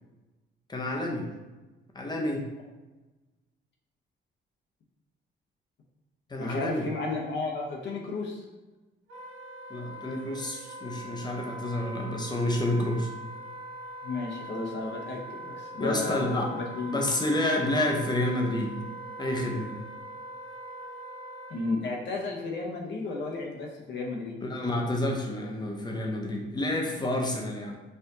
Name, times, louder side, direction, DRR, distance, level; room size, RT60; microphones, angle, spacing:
voice 1, 0.7-1.3 1.9-2.5 6.3-6.9 9.7-13.1 15.8-16.5 16.9-18.8 19.2-19.7 24.4-27.8, left 1 dB, 20° left, 0 dB, 0.7 m, -29 dB
voice 2, 6.4-8.4 14.0-17.0 21.5-24.4, left 3 dB, 65° left, 0 dB, 0.8 m, -33 dB
Wind instrument woodwind instrument, 9.1-21.8, right 1 dB, 75° right, 1.1 m, -42 dB
4.4 x 2.5 x 2.6 m, 1.1 s
cardioid pair, 90°, 20 cm